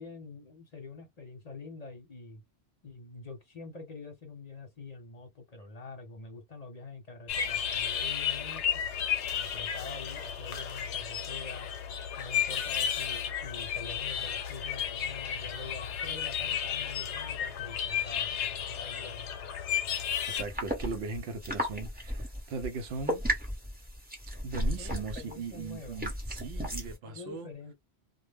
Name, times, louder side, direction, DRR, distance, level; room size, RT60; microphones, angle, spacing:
voice 1, 0.0-2.4 2.8-8.8 9.3-11.7 12.2-19.3 24.8-26.0 27.0-27.7, left 3 dB, 40° left, 0.8 m, -46 dB
sound 1, 7.3-20.4, left 8 dB, 85° left, 0.9 m, -33 dB
voice 2, 20.3-23.2 24.4-27.5, right 4 dB, 70° right, 0.8 m, -38 dB
sound 2, 20.4-27.0, equal, 10° right, 0.8 m, -35 dB
2.1 x 2.1 x 3.3 m
omnidirectional pair, 1.1 m